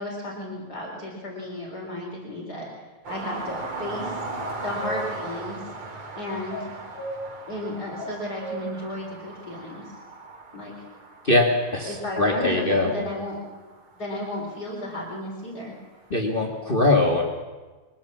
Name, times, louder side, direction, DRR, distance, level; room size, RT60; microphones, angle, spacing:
voice 1, 0.0-2.7 3.1-4.1 4.6-5.6 6.2-6.7 7.5-9.9 10.5-10.7 11.8-13.4 14.0-15.7, left 1 dB, 50° left, -2 dB, 4.6 m, -33 dB
sound 1, 3.0-14.5 16.0-16.1, right 3 dB, 80° right, 3.3 m, -38 dB
sound 2, 4.4-5.0 6.5-7.2 8.0-8.6, left 1 dB, 75° left, 6.2 m, -35 dB
voice 2, 11.2-12.9 16.1-17.2, left 2 dB, 25° left, 1 dB, 2.0 m, -21 dB
23.0 x 19.5 x 7.3 m, 1.3 s
omnidirectional pair, 2.3 m